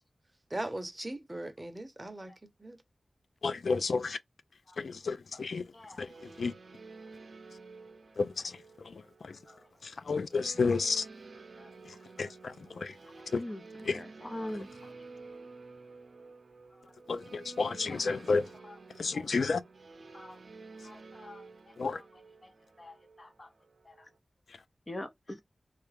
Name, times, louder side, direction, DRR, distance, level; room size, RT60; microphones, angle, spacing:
voice 1, 0.5-2.3 2.6-2.8, right 1 dB, 25° right, 0.8 m, -39 dB
voice 2, 3.4-4.2 4.8-5.7 6.0-6.5 8.2-9.4 9.8-11.1 11.9-13.0 13.3-13.4 13.8-14.0 17.1-18.5 19.0-19.6 21.8-22.0, left 4 dB, 85° left, 0.3 m, -32 dB
voice 3, 5.7-6.1 9.5-9.6 11.6-11.7 12.2-12.3 13.3-13.6 13.9-14.7 19.1-19.2 20.1-20.4 20.8-21.5 21.9-22.0 22.4-22.5 22.8-23.5 23.9-24.1 24.9-25.4, left 1 dB, 30° left, 0.7 m, -43 dB
sound 1, 6.1-24.2, right 3 dB, 70° right, 0.6 m, -51 dB
3.2 x 2.3 x 3.3 m
wide cardioid pair, 75°, 0 cm